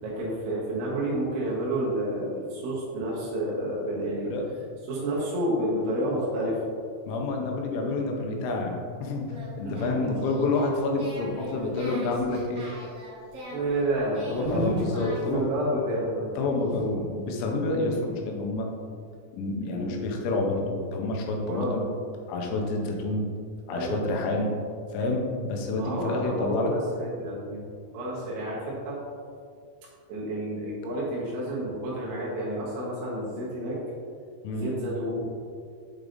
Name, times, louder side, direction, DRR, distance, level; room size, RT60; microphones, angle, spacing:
voice 1, 0.0-4.3 4.9-6.6 9.7-10.2 13.5-16.3 16.7-16.8 19.7-20.0 21.5-21.8 23.7-24.0 25.8-27.6 27.9-29.0 30.1-33.8 34.5-35.3, right 1 dB, 80° right, -6 dB, 3.5 m, -30 dB
voice 2, 7.1-9.2 9.6-12.6 14.3-15.5 16.4-18.7 19.3-21.9 22.3-23.3 23.7-24.5 24.9-26.7 34.4-34.7, left 2 dB, 85° left, 1 dB, 3.2 m, -28 dB
Singing, 9.2-15.4, equal, 60° right, 1.6 m, -42 dB
8.7 x 4.8 x 2.6 m, 2.2 s
omnidirectional pair, 5.4 m